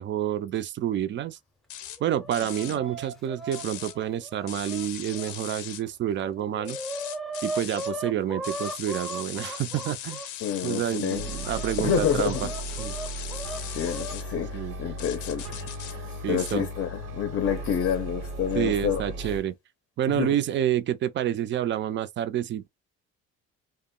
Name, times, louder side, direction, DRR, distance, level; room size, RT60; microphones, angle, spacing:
voice 1, 0.0-1.4 2.0-6.8 7.4-10.2 10.6-12.3 12.8-12.9 14.5-14.7 16.2-16.7 18.6-19.5 20.0-22.7, right 11 dB, 40° right, 0.4 m, -28 dB
sound 1, 1.7-2.0 2.3-2.8 3.5-3.9 4.5-5.8 6.6-7.9 8.4-14.2 15.0-15.9 16.4-16.6, left 11 dB, 85° left, 0.6 m, -39 dB
Chicken rooster, 1.8-5.3 5.9-6.0 6.2-10.3 10.9-14.2 15.4-15.5 16.5-16.6 17.6-17.9, right 1 dB, ahead, 0.6 m, -38 dB
voice 2, 10.4-11.3 11.8-12.6 13.2-19.4 20.1-20.4, left 8 dB, 45° left, 0.6 m, -29 dB
sound 2, 11.1-19.4, right 1 dB, 85° right, 0.9 m, -36 dB
2.2 x 2.0 x 3.6 m
cardioid pair, 105°, 30 cm